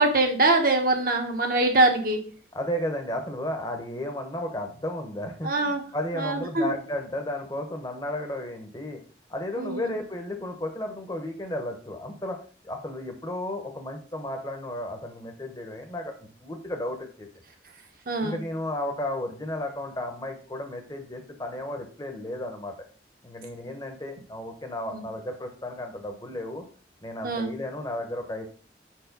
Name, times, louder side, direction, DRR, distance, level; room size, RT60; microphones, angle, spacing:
voice 1, 0.0-2.2 5.4-5.8 6.2-6.7 9.6-9.9 18.1-18.4 24.9-25.0 27.2-27.5, right 2 dB, 50° right, 3 dB, 1.2 m, -23 dB
voice 2, 2.5-9.0 9.3-12.4 12.6-16.1 16.4-17.3 18.2-22.9 23.2-26.6 27.0-28.5, left 1 dB, 20° left, 5 dB, 0.9 m, -33 dB
5.2 x 4.6 x 5.2 m, 0.42 s
head